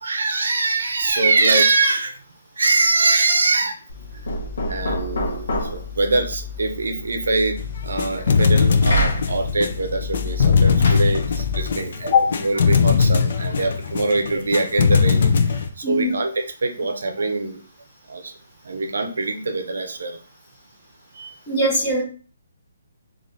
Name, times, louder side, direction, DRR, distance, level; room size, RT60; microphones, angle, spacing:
voice 1, 0.0-2.2 2.6-3.8 4.7-7.6 7.8-12.1 12.4-17.6 18.1-18.3 18.6-20.2 21.1-21.3, right 3 dB, 70° right, 5 dB, 0.7 m, -23 dB
Knock, 3.9-11.8, left 1 dB, 55° left, 0.8 m, -29 dB
sound 1, 7.6-15.7, left 5 dB, 40° left, 0.4 m, -19 dB
voice 2, 15.8-16.2 21.5-22.0, left 2 dB, 10° left, -8 dB, 1.1 m, -19 dB
3.8 x 2.5 x 3.2 m, 0.39 s
hypercardioid pair, 175°, 0 cm